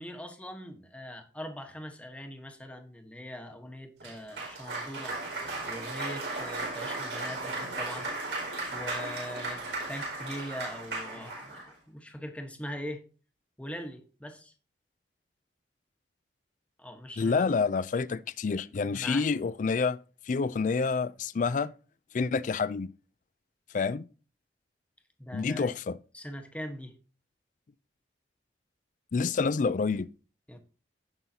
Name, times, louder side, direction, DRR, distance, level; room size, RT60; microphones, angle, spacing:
voice 1, 0.0-5.2 5.6-8.4 8.7-13.0 13.6-14.5 16.8-17.4 18.8-19.3 25.2-25.7 26.1-26.9 30.5-30.6, equal, 5° left, 1.1 m, -41 dB
Cheering / Applause, 4.0-11.7, right 2 dB, 90° right, 5.0 m, -36 dB
voice 2, 17.2-20.0 20.2-21.7 22.1-22.9 23.7-24.0 25.3-26.0 29.1-30.1, left 4 dB, 45° left, 0.4 m, -28 dB
16.0 x 5.5 x 2.8 m
head